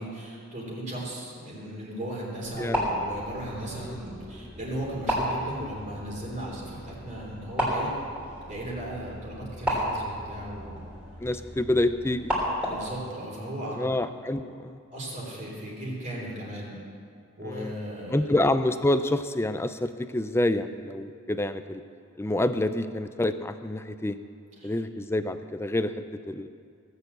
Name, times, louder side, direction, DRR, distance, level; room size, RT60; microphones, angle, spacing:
voice 1, 0.0-8.0 8.4-10.8 12.6-13.8 14.9-16.8 17.4-18.3 24.6-24.7, right 1 dB, 35° right, -4 dB, 3.2 m, -36 dB
sound 1, 2.4-13.0, equal, 5° right, 3.3 m, -33 dB
voice 2, 11.2-12.4 13.8-14.8 17.4-17.7 18.1-21.8 22.2-24.2 24.6-26.5, left 1 dB, 10° left, 11 dB, 0.4 m, -27 dB
17.0 x 6.9 x 8.2 m, 2.4 s
head